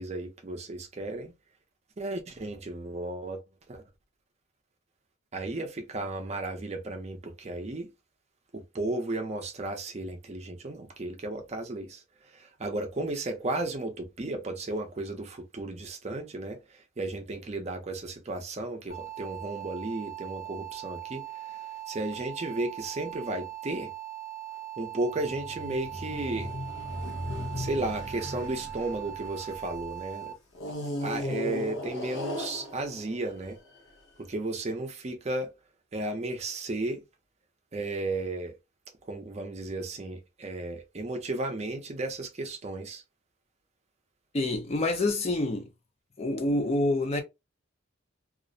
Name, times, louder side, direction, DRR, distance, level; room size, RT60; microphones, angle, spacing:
voice 1, 0.0-1.3 2.0-3.4 3.7-3.8 5.3-7.9 8.5-23.9 24.8-26.5 27.5-30.3 31.0-33.6 34.2-35.5 35.9-37.0 37.7-38.5 39.1-43.0, right 2 dB, 30° right, 0.5 m, -34 dB
sound 1, 18.9-30.3, right 13 dB, 90° left, 1.2 m, -40 dB
sound 2, 25.1-29.8 30.5-34.0, left 1 dB, 65° left, 0.8 m, -37 dB
voice 2, 44.3-45.7 46.2-47.2, left 2 dB, 30° left, 0.4 m, -27 dB
2.4 x 2.0 x 2.6 m
head